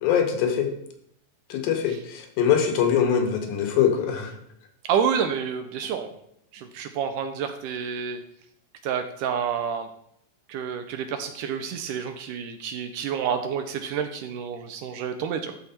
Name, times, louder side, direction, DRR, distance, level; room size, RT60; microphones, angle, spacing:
voice 1, 0.0-0.7 1.5-4.3, left 8 dB, 80° left, 5 dB, 2.9 m, -23 dB
voice 2, 4.8-6.1 6.5-8.2 8.8-9.9 10.5-15.5, right 7 dB, 80° right, 7 dB, 1.9 m, -29 dB
13.0 x 4.6 x 4.2 m, 0.72 s
omnidirectional pair, 4.2 m